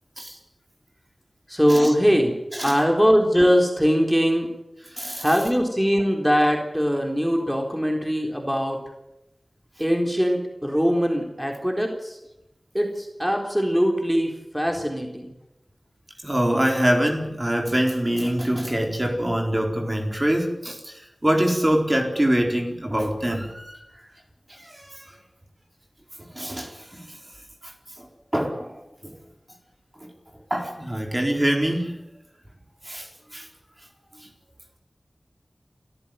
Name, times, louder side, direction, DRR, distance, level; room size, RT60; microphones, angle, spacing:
voice 1, 1.5-2.4 2.6-4.5 5.2-8.8 9.8-12.2 12.7-15.3, equal, 5° right, 2 dB, 3.9 m, -21 dB
voice 2, 4.9-5.2 16.2-23.8 24.5-25.0 26.3-27.0 28.0-28.1 28.3-29.1 30.0-30.1 30.5-31.9 32.9-33.5, right 1 dB, 25° right, 2 dB, 4.3 m, -24 dB
27.5 x 14.5 x 9.3 m, 0.92 s
wide cardioid pair, 60°, 0 cm